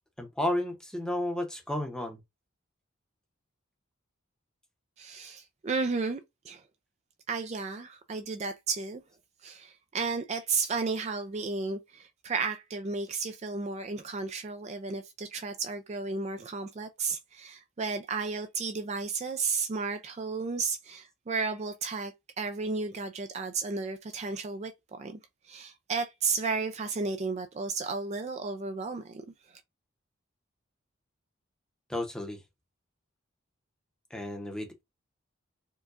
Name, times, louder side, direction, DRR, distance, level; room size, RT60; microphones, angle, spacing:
voice 1, 0.2-2.2 31.9-32.4 34.1-34.8, left 1 dB, 5° left, 0.7 m, -32 dB
voice 2, 5.0-6.6 7.3-9.0 9.4-25.2 25.4-29.2 29.5-29.6, right 4 dB, 35° right, 0.3 m, -33 dB
4.5 x 2.2 x 2.5 m
head